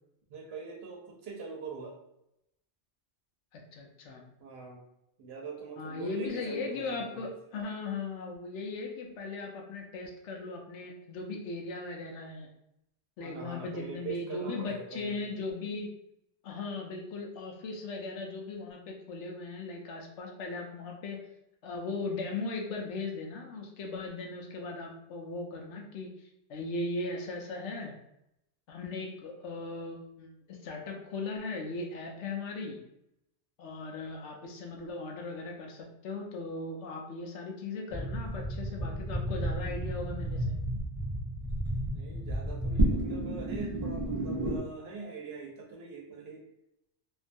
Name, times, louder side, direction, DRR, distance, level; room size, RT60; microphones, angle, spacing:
voice 1, 0.3-2.0 4.4-4.8 5.2-7.3 13.2-15.2 41.9-46.4, right 4 dB, 65° right, -1 dB, 0.9 m, -43 dB
voice 2, 3.5-4.2 5.8-12.5 13.2-15.9 16.4-21.2 21.6-26.1 26.5-27.9 28.7-32.8 33.6-40.6, left 3 dB, 80° left, 1 dB, 0.9 m, -38 dB
sound 1, 37.9-44.6, right 1 dB, 40° right, 0.5 m, -32 dB
2.6 x 2.3 x 2.5 m, 0.81 s
omnidirectional pair, 1.2 m